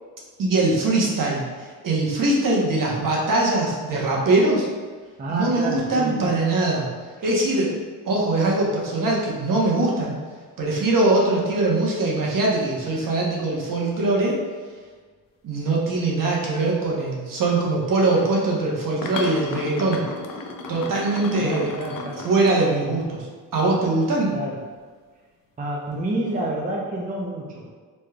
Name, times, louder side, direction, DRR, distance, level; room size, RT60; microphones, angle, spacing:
voice 1, 0.4-4.7 5.3-6.9 7.2-7.8 8.0-10.2 10.6-14.4 15.4-20.0 20.7-21.7 22.2-23.3 23.5-24.3, right 2 dB, 55° right, -3 dB, 1.1 m, -22 dB
voice 2, 5.2-6.4 7.2-7.3 21.4-22.2 24.3-24.6 25.6-27.7, right 1 dB, 20° right, -3 dB, 0.6 m, -29 dB
sound 1, 18.0-18.3 18.9-23.2 26.2-26.5, left 3 dB, 55° left, 0.6 m, -35 dB
4.2 x 3.2 x 2.3 m, 1.5 s
cardioid pair, 70°, 40 cm